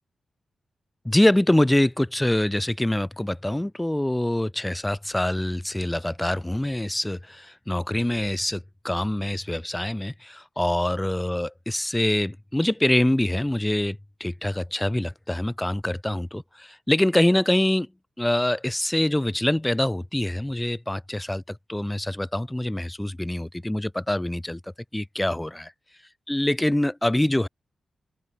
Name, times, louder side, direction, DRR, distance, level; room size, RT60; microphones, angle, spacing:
voice 1, 1.0-17.9 18.2-24.6 24.9-25.7 26.3-27.5, left 1 dB, 10° left, 0.5 m, -25 dB
open air
wide cardioid pair, 140°, 0 cm